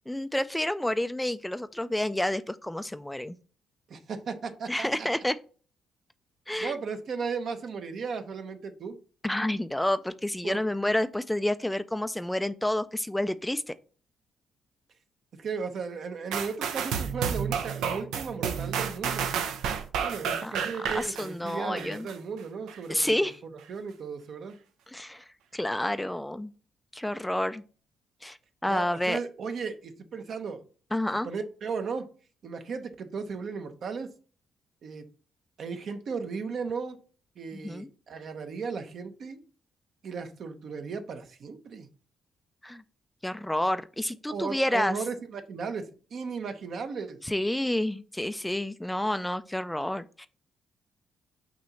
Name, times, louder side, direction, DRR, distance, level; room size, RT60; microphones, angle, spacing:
voice 1, 0.1-3.4 4.7-5.4 6.5-6.8 9.2-13.7 20.4-22.1 22.9-23.4 24.9-25.2 25.5-26.5 26.9-27.6 28.2-28.4 28.6-29.2 30.9-31.3 37.5-37.9 42.6-42.8 43.2-45.0 47.2-50.3, left 1 dB, 5° left, 12 dB, 0.3 m, -29 dB
voice 2, 3.9-5.1 6.6-9.0 10.4-10.6 15.4-19.3 20.0-24.6 28.7-30.6 31.2-32.1 32.4-34.1 34.8-35.1 35.6-37.0 37.4-39.4 40.0-41.9 44.3-47.2, right 5 dB, 60° right, 7 dB, 0.9 m, -36 dB
sound 1, 16.3-22.1 22.7-22.8, right 7 dB, 90° right, 0.7 m, -31 dB
6.2 x 3.0 x 5.6 m, 0.40 s
cardioid pair, 90°, 0 cm